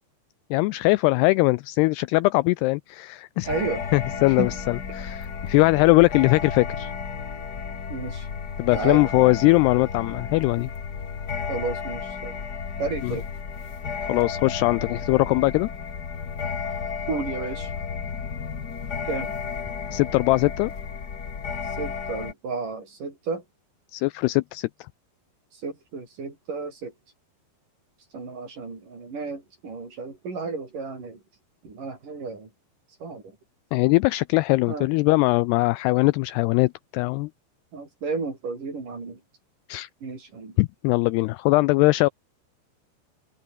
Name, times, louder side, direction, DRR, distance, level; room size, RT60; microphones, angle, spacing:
voice 1, 0.5-3.5 3.9-6.9 8.6-10.7 13.0-13.1 14.1-15.7 19.9-20.7 23.9-24.7 33.7-37.3 39.7-39.9 40.6-42.1, left 22 dB, 85° left, 2.4 m, -21 dB
sound 1, 3.4-22.3, left 6 dB, 60° left, 1.0 m, -33 dB
voice 2, 3.5-3.8 4.4-4.5 7.9-8.3 8.7-9.1 11.5-12.3 12.8-13.3 13.6-13.7 17.1-17.7 19.1-19.3 21.6-23.4 25.5-26.9 28.1-31.2 31.6-32.5 33.0-33.4 34.7-34.9 37.7-39.2 40.0-40.6, right 4 dB, 45° right, 7.7 m, -32 dB
open air
omnidirectional pair, 5.1 m